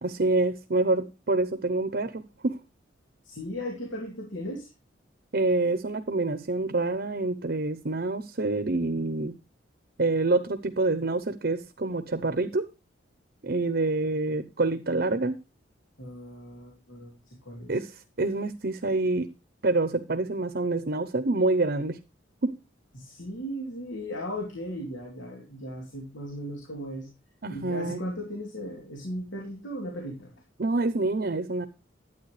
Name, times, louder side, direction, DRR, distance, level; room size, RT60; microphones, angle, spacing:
voice 1, 0.0-2.6 5.3-9.4 10.0-12.7 13.4-15.4 17.7-19.3 19.6-22.0 22.4-22.5 27.4-28.0 30.6-31.7, right 2 dB, 55° right, 0.8 m, -27 dB
voice 2, 3.2-4.7 16.0-17.8 22.9-27.1 27.5-30.3, equal, 85° left, 3.1 m, -37 dB
12.0 x 9.1 x 3.2 m
head